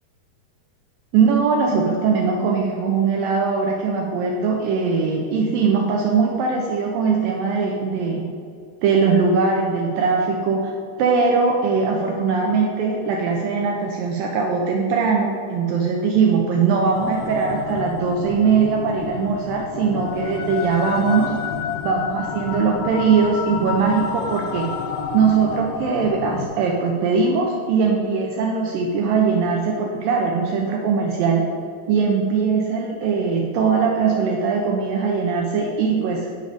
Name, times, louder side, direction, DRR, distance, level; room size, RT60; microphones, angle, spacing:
voice 1, 1.1-8.2 8.8-10.7 11.0-21.3 21.8-24.7 25.1-31.4 31.9-36.3, right 5 dB, 85° right, 0 dB, 2.0 m, -20 dB
sound 1, 16.9-26.5, left 6 dB, 80° left, 2.2 m, -30 dB
10.0 x 5.2 x 5.2 m, 2.3 s
omnidirectional pair, 4.9 m